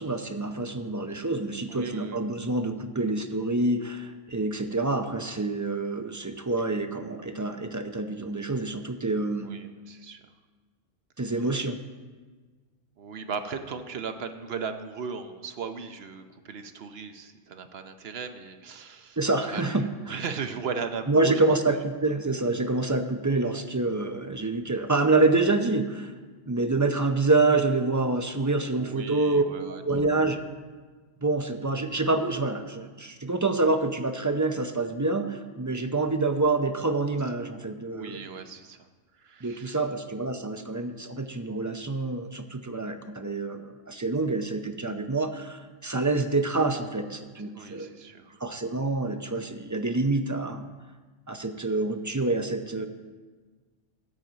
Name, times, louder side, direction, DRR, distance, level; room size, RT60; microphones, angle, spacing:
voice 1, 0.0-9.5 11.2-11.8 19.2-20.2 21.1-26.1 26.5-30.4 31.2-38.3 39.4-47.9 48.4-50.7 51.3-52.9, right 3 dB, 20° right, 7 dB, 0.5 m, -27 dB
voice 2, 1.7-2.2 9.4-10.2 13.0-19.2 19.5-19.8 20.1-21.4 28.7-30.1 37.9-38.9 39.2-39.8 47.4-48.4, right 5 dB, 65° right, 8 dB, 1.0 m, -37 dB
14.0 x 8.8 x 4.0 m, 1.4 s
omnidirectional pair, 1.2 m